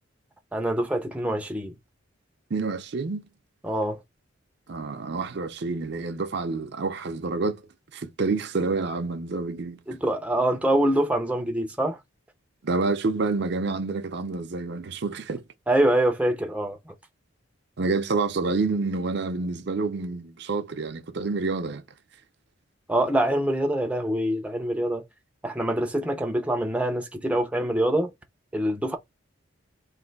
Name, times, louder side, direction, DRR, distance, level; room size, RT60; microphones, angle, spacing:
voice 1, 0.5-1.7 3.6-4.0 9.9-12.0 15.7-16.9 22.9-25.0 25.4-28.1 28.5-29.0, right 1 dB, 5° right, 0.5 m, -25 dB
voice 2, 2.5-3.2 4.7-7.6 7.9-9.8 12.6-15.4 17.8-21.8, right 3 dB, 55° right, 0.5 m, -28 dB
3.2 x 2.6 x 3.9 m
head